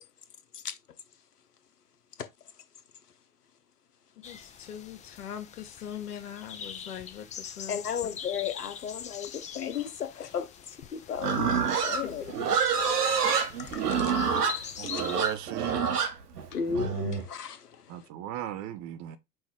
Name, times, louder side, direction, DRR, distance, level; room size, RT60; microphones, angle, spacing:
voice 1, 4.2-7.8 11.9-12.6, left 9 dB, 75° left, 1.4 m, -41 dB
sound 1, 4.2-15.4, left 8 dB, 15° left, 0.5 m, -44 dB
voice 2, 7.7-10.5 10.9-11.5 11.8-12.2 13.6-14.1 14.8-15.0 16.5-17.7, left 7 dB, 90° left, 0.9 m, -34 dB
Livestock farm animals working animals, 11.2-17.2, right 6 dB, 85° right, 1.1 m, -27 dB
voice 3, 14.8-16.0 17.9-19.2, right 12 dB, 40° right, 0.8 m, -37 dB
5.4 x 2.7 x 3.7 m
hypercardioid pair, 100°, 45 cm